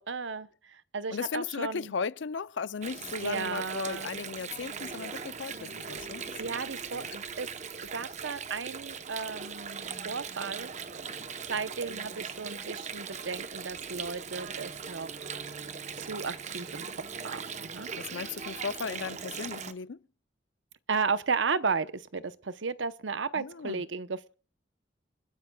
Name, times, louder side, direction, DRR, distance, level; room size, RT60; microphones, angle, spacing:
voice 1, 0.0-1.9 3.2-4.1 6.4-7.5 7.9-10.7 11.5-15.3 16.0-16.9 17.2-17.9 20.9-24.3, right 5 dB, 90° right, 0.9 m, -34 dB
voice 2, 1.1-6.6 6.9-7.1 17.9-20.0 23.4-23.8, left 5 dB, 80° left, 0.5 m, -36 dB
Water, 2.8-19.7, right 6 dB, 40° right, 0.9 m, -40 dB
30.0 x 10.0 x 2.3 m
head